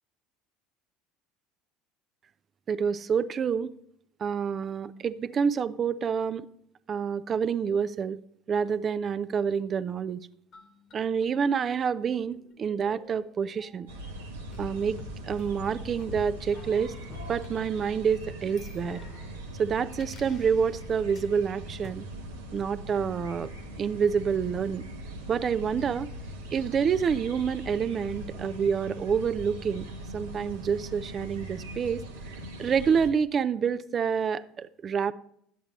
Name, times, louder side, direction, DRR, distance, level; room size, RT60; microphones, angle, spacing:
voice 1, 2.7-3.7 4.2-6.5 6.9-8.2 8.5-10.3 10.9-13.9 14.6-15.0 15.3-16.9 17.3-19.0 19.6-22.0 22.5-23.5 23.8-24.9 25.3-26.1 26.5-29.9 30.1-32.0 32.6-35.1, right 6 dB, 35° right, 14 dB, 0.4 m, -28 dB
sound 1, 10.5-14.1 14.5-17.5 18.4-21.3 21.8-21.9, left 4 dB, 45° left, 1.2 m, -50 dB
sound 2, 13.9-33.1, right 1 dB, 85° right, 1.0 m, -41 dB
11.0 x 8.1 x 3.0 m, 0.69 s
hypercardioid pair, 70°, 0 cm